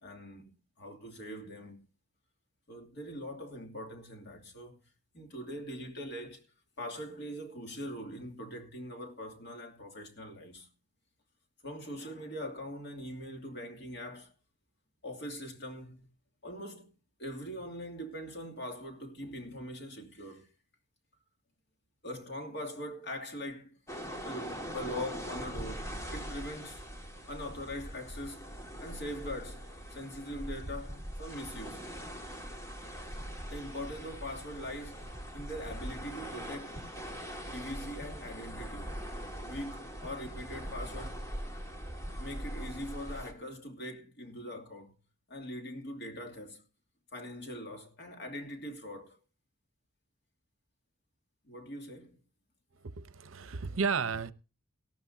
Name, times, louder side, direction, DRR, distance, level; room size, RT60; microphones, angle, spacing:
voice 1, 0.0-1.8 2.7-4.8 5.1-6.4 6.8-10.7 11.6-14.3 15.0-16.1 16.4-16.9 17.2-20.5 22.0-23.8 24.2-26.8 27.3-28.5 28.8-31.9 33.5-35.1 35.3-36.9 37.5-39.0 39.4-41.3 42.2-44.9 45.3-46.6 47.1-49.2 51.5-52.2, equal, 55° left, 2.7 m, -42 dB
sound 1, 23.9-43.3, equal, 15° left, 2.1 m, -42 dB
voice 2, 52.8-54.3, right 5 dB, 75° right, 0.8 m, -33 dB
19.0 x 13.5 x 2.7 m
head